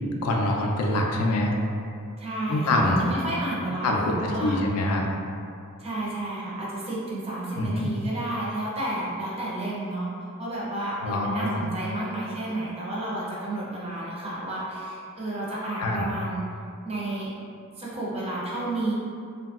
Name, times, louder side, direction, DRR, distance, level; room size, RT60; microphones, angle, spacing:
voice 1, 0.2-1.5 2.5-3.1 3.8-5.1 7.6-7.9 11.0-11.8 15.8-16.0, left 1 dB, 80° left, 0 dB, 0.4 m, -25 dB
voice 2, 2.2-4.6 5.8-10.1 10.4-16.4 16.8-17.3 17.8-18.9, right 1 dB, 25° right, -6 dB, 0.5 m, -31 dB
2.8 x 2.5 x 2.3 m, 2.5 s
head